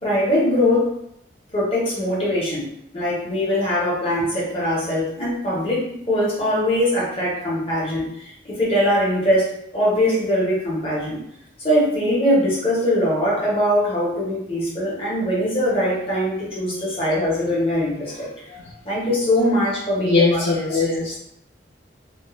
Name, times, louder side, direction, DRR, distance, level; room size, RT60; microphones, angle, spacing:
voice 1, 0.0-0.9 1.5-2.6 2.9-9.5 9.7-11.2 11.6-18.3 18.8-20.9, left 1 dB, 30° left, -6 dB, 0.8 m, -21 dB
voice 2, 20.0-21.2, left 3 dB, 65° left, -5 dB, 0.4 m, -21 dB
2.3 x 2.1 x 3.0 m, 0.76 s
head